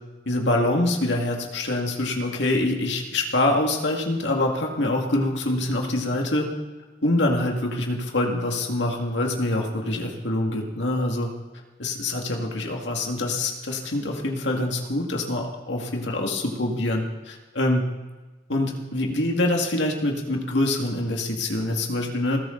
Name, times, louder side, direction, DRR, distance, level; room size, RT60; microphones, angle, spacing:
voice 1, 0.3-6.5 7.0-11.3 11.8-17.9 18.5-22.4, left 1 dB, 80° left, 1 dB, 2.2 m, -25 dB
20.0 x 14.5 x 4.0 m, 1.2 s
head